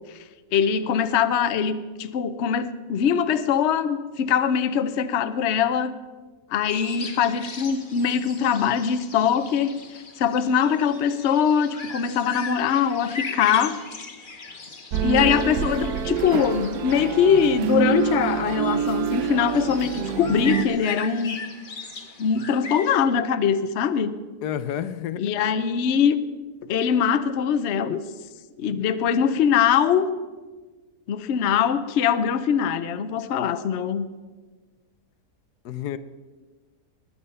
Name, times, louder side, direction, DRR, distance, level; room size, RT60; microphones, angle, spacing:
voice 1, 0.5-5.9 6.5-9.8 10.2-13.8 15.0-21.4 22.2-24.1 25.2-26.2 26.6-28.0 28.6-30.1 31.1-34.1, left 7 dB, 55° left, 11 dB, 0.9 m, -22 dB
sound 1, 6.7-23.0, left 4 dB, 35° left, 1.3 m, -39 dB
sound 2, 14.9-20.6, right 7 dB, 80° right, 1.3 m, -26 dB
voice 2, 24.4-25.3 35.6-36.0, left 10 dB, 80° left, 14 dB, 1.2 m, -30 dB
20.5 x 8.7 x 5.6 m, 1.3 s
omnidirectional pair, 1.7 m